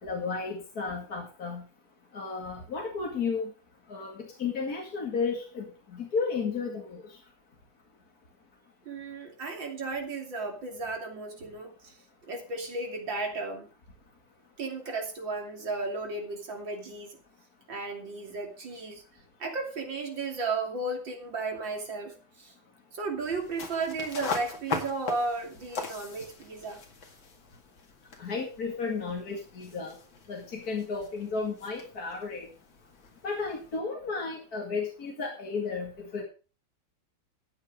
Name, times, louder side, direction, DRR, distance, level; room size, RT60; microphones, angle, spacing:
voice 1, 0.0-1.6 2.1-3.5 3.9-7.0 28.2-30.0 30.3-32.5 33.2-36.2, left 4 dB, 50° left, 0 dB, 2.7 m, -33 dB
voice 2, 8.9-12.0 12.3-13.7 14.6-17.2 17.7-19.0 19.4-22.5 22.9-26.8, right 3 dB, 70° right, 2 dB, 3.6 m, -34 dB
sound 1, 23.2-33.8, left 4 dB, 80° left, 2.9 m, -41 dB
14.0 x 8.8 x 5.0 m, 0.35 s
omnidirectional pair, 2.1 m